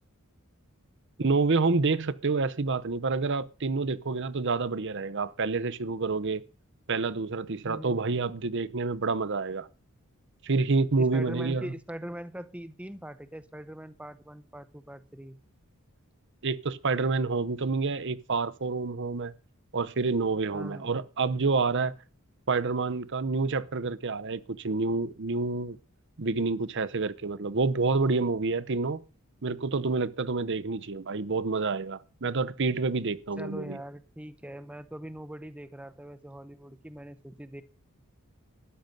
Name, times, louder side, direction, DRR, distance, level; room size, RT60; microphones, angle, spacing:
voice 1, 1.2-6.4 6.9-9.7 10.4-11.7 16.4-19.3 19.7-21.9 22.5-25.8 26.2-29.0 29.4-33.8, right 3 dB, 55° right, 0.8 m, -28 dB
voice 2, 7.6-8.0 10.9-15.4 20.5-20.9 33.4-37.6, right 1 dB, 5° right, 0.7 m, -42 dB
13.0 x 10.5 x 5.3 m
head